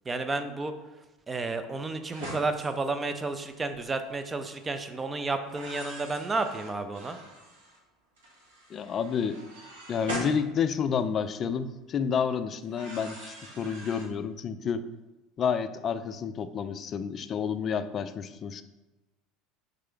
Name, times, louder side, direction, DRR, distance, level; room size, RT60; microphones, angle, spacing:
voice 1, 0.1-0.7 1.3-7.2, right 3 dB, 20° right, 8 dB, 0.5 m, -31 dB
sound 1, 2.1-2.7 3.6-3.8 5.4-7.8 8.2-11.2 12.6-14.0, right 1 dB, 80° right, 1.2 m, -42 dB
voice 2, 8.7-9.4 9.9-14.8 15.4-18.6, left 7 dB, 40° left, 12 dB, 0.3 m, -30 dB
3.7 x 3.3 x 3.6 m, 1.1 s
hypercardioid pair, 80°, 0 cm